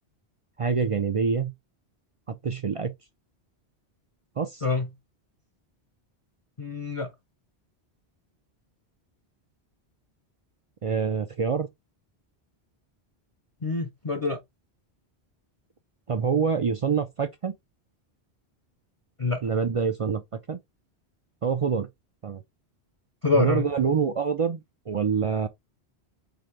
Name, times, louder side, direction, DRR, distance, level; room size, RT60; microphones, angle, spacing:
voice 1, 0.6-1.5 2.3-2.9 4.4-4.6 10.8-11.7 16.1-17.5 19.4-20.2 20.5-20.6 21.4-21.9 22.2-22.4 23.3-25.5, right 6 dB, 50° right, 0.4 m, -26 dB
voice 2, 6.6-7.1 13.6-14.4 19.2-19.5 23.2-23.7, left 3 dB, 40° left, 0.6 m, -26 dB
3.9 x 3.8 x 3.2 m
omnidirectional pair, 1.1 m